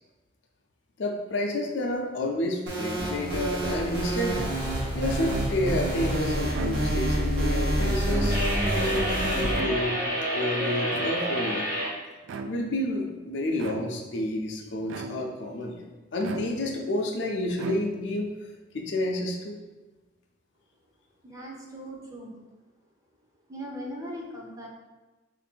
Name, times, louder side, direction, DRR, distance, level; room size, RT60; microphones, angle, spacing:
voice 1, 1.0-4.4 4.9-8.4 8.7-10.0 10.3-11.7 12.5-15.8 16.1-18.3 18.7-19.6, left 1 dB, 65° left, 1 dB, 0.5 m, -30 dB
sound 1, 2.7-9.5, right 1 dB, 60° right, 1.0 m, -27 dB
sound 2, 5.3-5.8 6.4-7.2 8.0-8.8 9.5-10.2 10.9-11.5 12.2-12.8 13.6-14.2 14.9-15.5 16.2-16.9 17.5-18.2, right 3 dB, 75° right, 0.3 m, -38 dB
sound 3, 8.3-11.9, equal, 45° right, 1.2 m, -29 dB
voice 2, 21.2-22.3 23.5-24.7, equal, 20° right, -2 dB, 0.6 m, -39 dB
3.1 x 2.6 x 4.3 m, 1.2 s
head